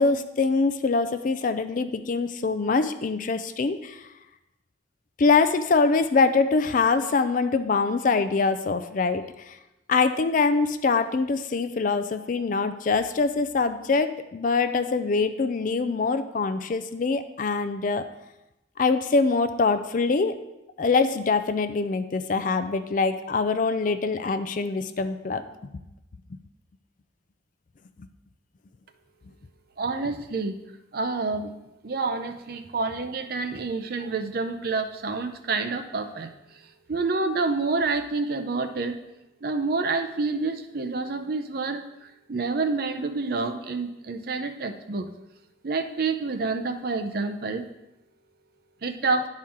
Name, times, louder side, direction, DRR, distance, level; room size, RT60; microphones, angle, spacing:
voice 1, 0.0-4.0 5.2-9.6 9.9-18.0 18.8-20.4 20.8-25.4, left 4 dB, 45° left, 9 dB, 0.4 m, -24 dB
voice 2, 29.8-30.5 30.9-31.5 31.8-36.3 36.9-39.0 39.4-45.1 45.6-47.6 48.8-49.3, right 3 dB, 50° right, 7 dB, 0.5 m, -28 dB
10.5 x 4.4 x 3.6 m, 0.93 s
head